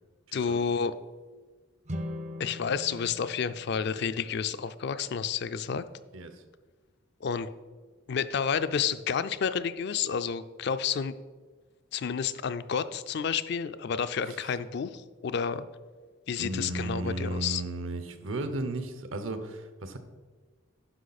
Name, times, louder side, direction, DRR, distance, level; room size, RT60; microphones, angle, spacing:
voice 1, 0.3-0.9 2.4-5.8 7.2-7.5 8.1-11.1 11.9-15.7 16.3-17.6, left 6 dB, 55° left, 12 dB, 0.4 m, -30 dB
sound 1, 1.8-5.1, left 1 dB, 35° right, 0.5 m, -41 dB
voice 2, 16.4-20.0, right 2 dB, 75° right, 9 dB, 0.9 m, -34 dB
9.8 x 6.1 x 4.1 m, 1.4 s
head